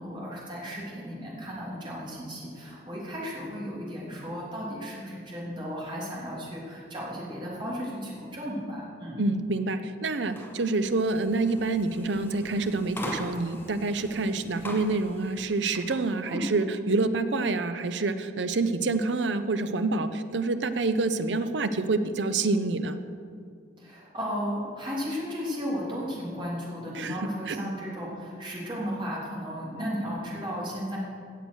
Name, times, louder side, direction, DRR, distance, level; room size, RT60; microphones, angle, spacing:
voice 1, 0.0-9.2 16.2-16.5 23.8-31.0, equal, 25° right, -5 dB, 3.1 m, -35 dB
voice 2, 9.2-23.0 26.9-27.2 27.5-27.6, right 3 dB, 80° right, 10 dB, 0.7 m, -27 dB
sound 1, 10.2-16.1, equal, 10° left, 1.3 m, -42 dB
17.0 x 6.9 x 6.4 m, 2.2 s
head